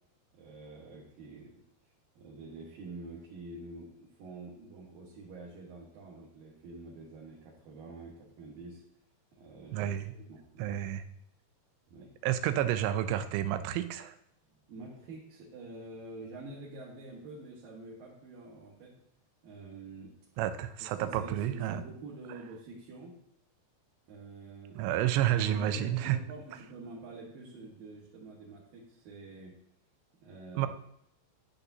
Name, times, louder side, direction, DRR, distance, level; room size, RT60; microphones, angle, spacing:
voice 1, 0.3-1.6 2.2-8.8 9.3-10.8 11.9-12.1 14.7-18.9 19.4-20.1 20.8-23.1 24.1-24.8 25.3-29.5 30.2-30.7, right 3 dB, 65° right, -5 dB, 2.6 m, -47 dB
voice 2, 9.7-10.1 10.6-11.0 12.2-14.1 20.4-21.8 24.8-26.2 30.6-30.7, right 12 dB, 85° right, 11 dB, 2.8 m, -30 dB
11.5 x 6.7 x 2.7 m, 0.75 s
omnidirectional pair, 5.2 m